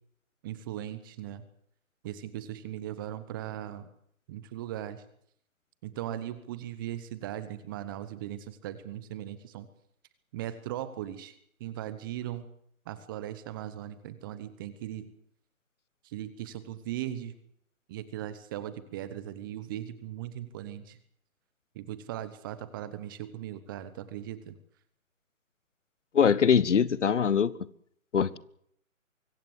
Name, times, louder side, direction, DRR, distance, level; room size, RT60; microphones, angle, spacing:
voice 1, 0.4-1.4 2.0-3.9 4.3-5.0 5.8-9.7 10.3-12.4 12.9-15.1 16.0-17.3 17.9-21.0 21.7-24.6, right 12 dB, 15° right, 14 dB, 0.9 m, -38 dB
voice 2, 26.1-27.5 28.1-28.4, left 7 dB, 60° left, 19 dB, 1.4 m, -22 dB
24.5 x 15.5 x 8.1 m, 0.67 s
figure-of-eight pair, 145°, 41 cm